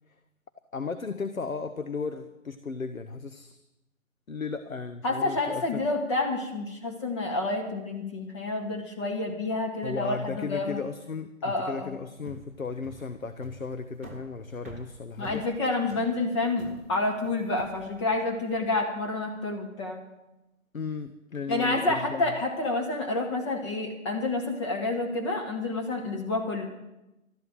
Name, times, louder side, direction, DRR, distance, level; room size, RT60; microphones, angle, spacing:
voice 1, 0.7-3.6 4.3-5.8 9.8-15.4 20.7-22.2, left 5 dB, 80° left, 9 dB, 1.1 m, -35 dB
voice 2, 5.0-10.8 11.4-12.0 15.2-20.0 21.5-26.7, left 2 dB, 20° left, 1 dB, 2.0 m, -29 dB
sound 1, 12.1-18.7, right 2 dB, 10° right, 0.7 m, -48 dB
13.0 x 11.0 x 7.7 m, 0.96 s
figure-of-eight pair, 150°, 40 cm